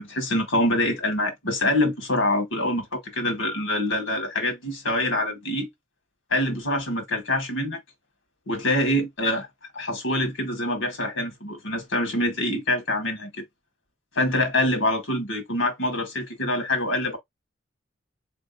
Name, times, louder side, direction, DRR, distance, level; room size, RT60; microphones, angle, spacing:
voice 1, 0.0-5.7 6.3-7.8 8.5-9.5 9.7-13.3 14.2-17.2, left 1 dB, 85° left, 1.8 m, -25 dB
4.0 x 3.4 x 2.6 m
head